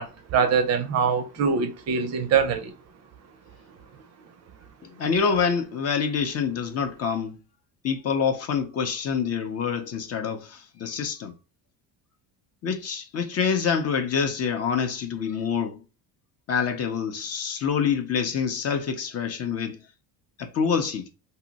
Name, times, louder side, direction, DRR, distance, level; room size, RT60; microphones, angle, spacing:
voice 1, 0.0-2.7, right 6 dB, 40° right, 0.5 m, -23 dB
voice 2, 4.8-7.4 7.8-11.3 12.6-15.8 16.5-19.8 20.4-21.1, left 6 dB, 40° left, 0.5 m, -26 dB
2.7 x 2.0 x 3.9 m
cardioid pair, 120°, 41 cm